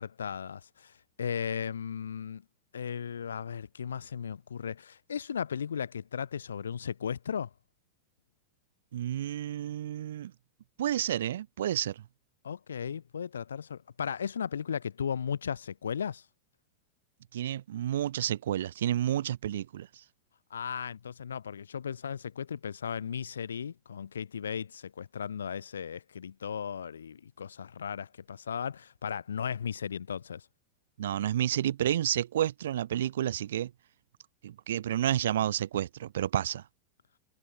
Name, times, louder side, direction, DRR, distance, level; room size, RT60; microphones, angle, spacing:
voice 1, 0.0-2.4 2.7-7.5 12.4-16.2 20.5-30.5, left 7 dB, 70° left, 0.5 m, -36 dB
voice 2, 8.9-10.3 10.8-12.0 17.3-20.0 31.0-33.7 34.4-36.6, right 11 dB, 60° right, 0.4 m, -30 dB
figure-of-eight pair, 90°, 0 cm